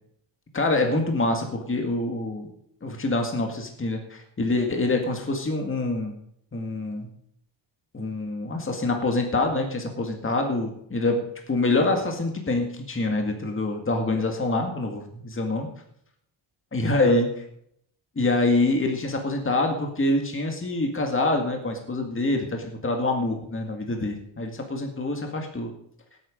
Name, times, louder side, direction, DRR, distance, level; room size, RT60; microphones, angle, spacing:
voice 1, 0.5-2.5 2.8-6.2 6.5-7.1 7.9-15.7 16.7-17.4 18.2-25.7, left 2 dB, 25° left, 3 dB, 2.0 m, -25 dB
17.5 x 9.0 x 5.2 m, 0.71 s
wide cardioid pair, 140°, 47 cm